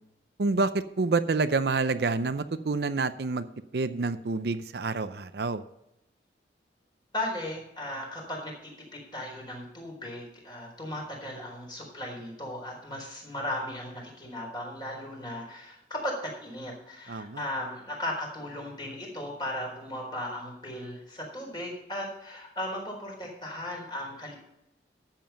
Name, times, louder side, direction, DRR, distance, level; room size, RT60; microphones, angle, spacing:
voice 1, 0.4-3.5 3.7-5.6 17.1-17.4, right 3 dB, 65° right, 12 dB, 0.5 m, -28 dB
voice 2, 7.1-24.4, left 1 dB, 25° left, -1 dB, 4.2 m, -36 dB
12.5 x 7.5 x 5.8 m, 0.85 s
head